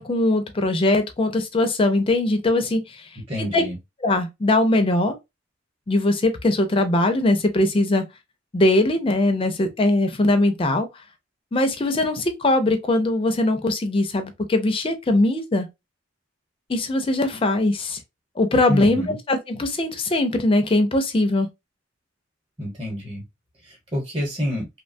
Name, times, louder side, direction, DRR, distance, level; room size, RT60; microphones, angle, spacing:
voice 1, 0.0-3.1 3.4-3.6 4.0-5.1 5.9-8.0 8.5-10.9 11.5-15.7 16.7-18.0 18.4-21.5, left 2 dB, 25° left, 0.4 m, -21 dB
voice 2, 3.3-3.7 18.7-19.1 22.6-23.2 23.9-24.7, equal, 25° right, 0.9 m, -27 dB
2.8 x 2.2 x 2.5 m
head